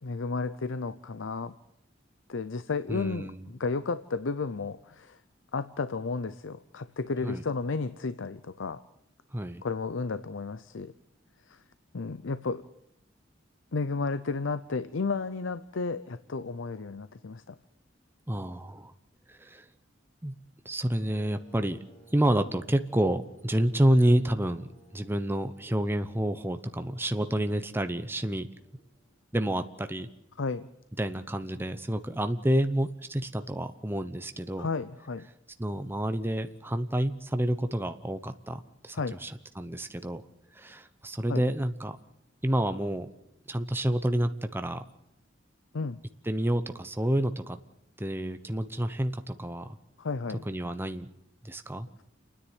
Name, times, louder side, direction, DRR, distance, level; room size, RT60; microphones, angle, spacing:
voice 1, 0.0-1.5 2.3-5.2 5.5-8.8 9.6-10.9 11.5-11.6 11.9-12.7 13.7-17.6 30.4-30.7 34.6-35.3 38.9-39.2 41.3-41.4 45.7-46.0 50.0-50.4, left 4 dB, 80° left, 13 dB, 0.7 m, -33 dB
voice 2, 2.9-3.4 7.2-7.4 9.3-9.6 18.3-18.9 19.3-19.6 20.2-20.3 20.6-21.8 22.1-28.5 29.3-30.1 31.0-34.7 35.6-39.3 39.6-40.2 40.5-42.0 42.4-43.1 43.5-44.8 46.3-47.6 48.0-49.8 50.5-51.1 51.4-51.9, right 1 dB, 10° right, 8 dB, 0.8 m, -29 dB
sound 1, 21.0-29.3, right 1 dB, 20° left, 7.9 m, -59 dB
29.5 x 10.0 x 9.3 m, 0.83 s
head